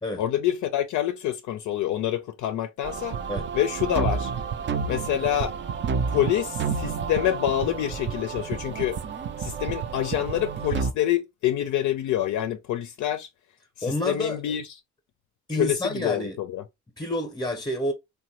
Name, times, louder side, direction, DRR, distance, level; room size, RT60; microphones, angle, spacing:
voice 1, 0.2-3.1 3.5-4.3 4.9-5.5 6.1-9.0 9.4-13.3 13.8-14.8 15.5-16.6, left 11 dB, 75° left, 0.5 m, -27 dB
sound 1, 2.8-10.9, right 6 dB, 40° right, 0.4 m, -30 dB
voice 2, 13.8-14.4 15.5-16.4 17.0-17.9, left 1 dB, 15° left, 0.7 m, -28 dB
3.2 x 2.2 x 2.8 m
cardioid pair, 90°, 30 cm